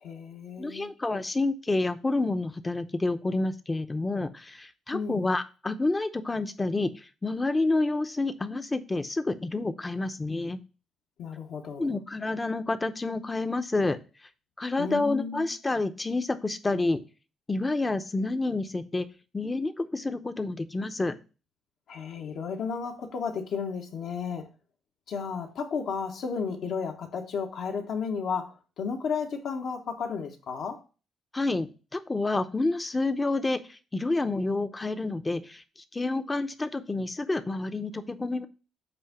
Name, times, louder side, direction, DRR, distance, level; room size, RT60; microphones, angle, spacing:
voice 1, 0.0-0.9 4.9-5.3 11.2-11.9 14.8-15.5 21.9-24.5 25.1-30.8, left 6 dB, 70° left, 1.3 m, -33 dB
voice 2, 0.6-10.6 11.8-14.0 14.6-17.0 17.5-19.1 19.3-21.2 31.3-35.6 35.9-38.5, left 2 dB, 20° left, 0.7 m, -29 dB
7.6 x 2.8 x 5.8 m
cardioid pair, 90°, 0 cm